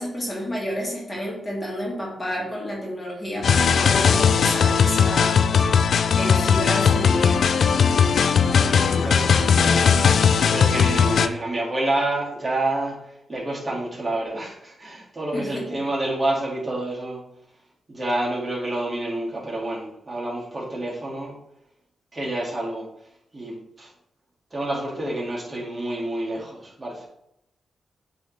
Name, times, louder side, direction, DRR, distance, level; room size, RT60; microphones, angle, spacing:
voice 1, 0.0-5.7 6.2-7.4 15.3-15.6, equal, 25° left, -3 dB, 2.1 m, -30 dB
sound 1, 3.4-11.3, left 6 dB, 70° left, 0.3 m, -18 dB
voice 2, 8.5-17.2 17.9-21.4 22.1-22.9 23.3-23.9 24.5-27.0, right 1 dB, 25° right, -5 dB, 2.2 m, -28 dB
8.2 x 3.5 x 3.3 m, 0.80 s
cardioid pair, 75°, 0 cm